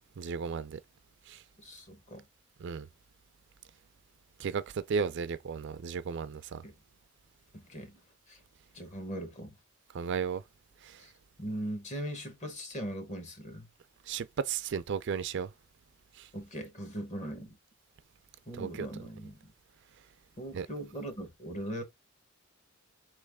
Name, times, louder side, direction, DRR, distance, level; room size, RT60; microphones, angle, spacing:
voice 1, 0.2-0.8 1.3-1.4 2.6-2.9 4.4-6.6 9.9-10.4 10.8-11.0 14.1-15.5 16.2-16.3 18.6-18.9 20.5-20.7, right 6 dB, 55° right, 0.4 m, -34 dB
voice 2, 1.6-2.3 6.6-6.8 7.5-8.0 8.3-8.4 8.7-9.6 11.0-11.1 11.4-13.7 16.3-17.6 18.5-19.5 20.4-21.8, equal, 30° left, 1.1 m, -40 dB
4.2 x 3.2 x 3.4 m
head